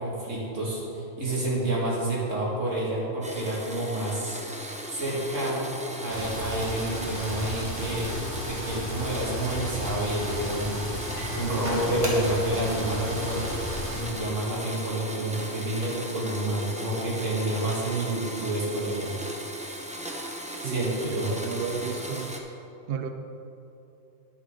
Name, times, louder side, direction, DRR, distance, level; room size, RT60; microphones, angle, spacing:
voice 1, 0.0-4.4 4.9-8.1 8.4-10.9 11.3-13.4 13.9-19.1 20.6-21.3, right 1 dB, 85° right, -5 dB, 2.5 m, -29 dB
Domestic sounds home sounds, 3.2-22.4, equal, 10° right, 0.5 m, -38 dB
sound 1, 6.1-14.0, equal, 25° right, 1.9 m, -34 dB
voice 2, 20.6-22.4 22.9-23.1, right 6 dB, 60° right, 6 dB, 0.7 m, -32 dB
9.8 x 9.7 x 3.8 m, 2.9 s
omnidirectional pair, 1.3 m